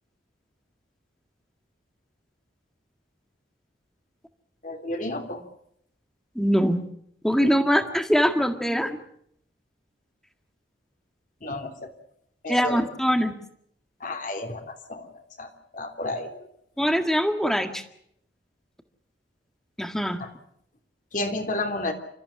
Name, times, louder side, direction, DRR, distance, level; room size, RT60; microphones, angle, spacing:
voice 1, 4.6-5.4 11.4-11.9 12.4-12.8 14.0-15.1 15.4-16.4 20.2-20.3 21.1-21.9, left 2 dB, 45° left, 5 dB, 3.1 m, -31 dB
voice 2, 6.3-6.8 7.2-9.0 12.5-13.3 16.8-17.8 19.8-20.2, equal, ahead, 7 dB, 1.7 m, -23 dB
29.0 x 14.5 x 8.8 m, 0.72 s
head